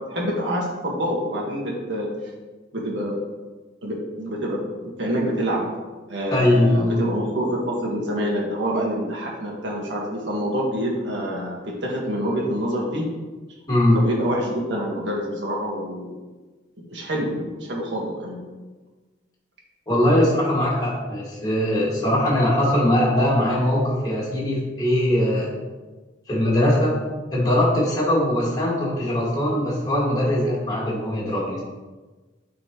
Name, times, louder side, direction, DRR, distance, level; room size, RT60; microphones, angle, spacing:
voice 1, 0.1-2.1 2.7-3.2 3.8-5.6 6.1-13.0 13.9-16.1 16.9-18.4, equal, 75° right, -3 dB, 1.6 m, -26 dB
voice 2, 6.3-7.0 13.7-14.0 19.9-25.5 26.3-27.0 27.3-31.6, left 1 dB, 20° left, -6 dB, 2.0 m, -21 dB
8.5 x 4.1 x 3.1 m, 1.3 s
head